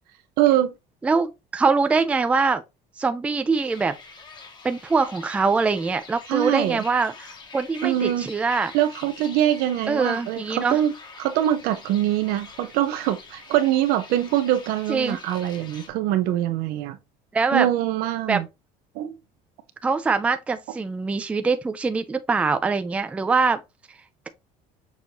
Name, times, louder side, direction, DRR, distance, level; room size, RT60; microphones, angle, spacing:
voice 1, 0.4-0.7 6.3-6.8 7.8-8.3 8.7-10.9 11.2-17.0 17.5-18.5 18.9-19.1, right 12 dB, 75° right, 0.7 m, -23 dB
voice 2, 1.0-2.6 3.0-3.9 4.6-7.3 7.5-8.7 9.9-10.8 14.9-15.2 17.3-17.7 18.3-18.4 19.8-23.6, right 4 dB, 10° right, 0.3 m, -23 dB
sound 1, 3.5-15.9, left 4 dB, 30° left, 1.0 m, -45 dB
6.2 x 2.7 x 2.8 m
cardioid pair, 150°, 16 cm